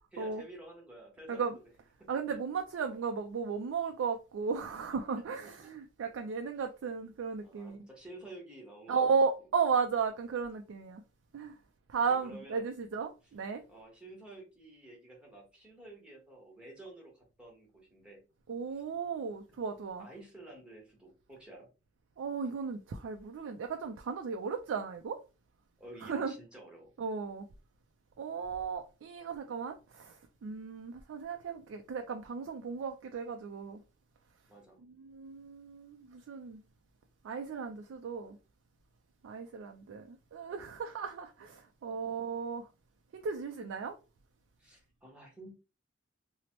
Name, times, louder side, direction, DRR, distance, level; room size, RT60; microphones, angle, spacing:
voice 1, 0.1-1.6 2.0-2.4 7.4-9.1 12.1-12.7 13.2-13.3 13.7-18.2 18.7-18.8 20.0-21.7 25.8-26.9 34.5-34.8 41.9-42.0 44.6-45.5, right 2 dB, 5° right, 1.0 m, -51 dB
voice 2, 2.1-7.8 8.9-11.0 11.3-11.5 11.9-13.6 18.5-20.1 22.2-25.2 26.0-26.3 27.0-27.5 28.2-30.1 30.4-33.8 35.0-36.6 37.2-38.4 39.2-42.6 43.1-43.9, right 5 dB, 85° right, 0.3 m, -35 dB
2.9 x 2.0 x 2.8 m
head